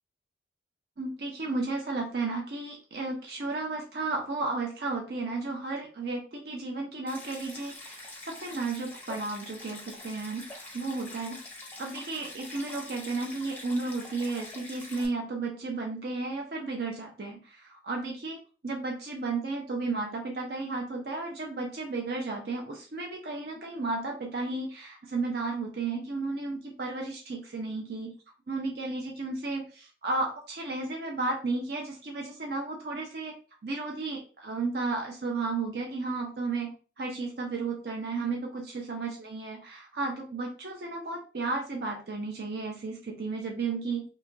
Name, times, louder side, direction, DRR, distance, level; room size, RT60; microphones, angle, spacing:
voice 1, 1.0-11.4 11.8-28.1 28.5-33.3 33.6-44.0, right 3 dB, 55° right, 0 dB, 0.5 m, -33 dB
Stream, 7.1-15.1, left 2 dB, 10° left, 0.5 m, -45 dB
2.9 x 2.3 x 2.5 m, 0.36 s
head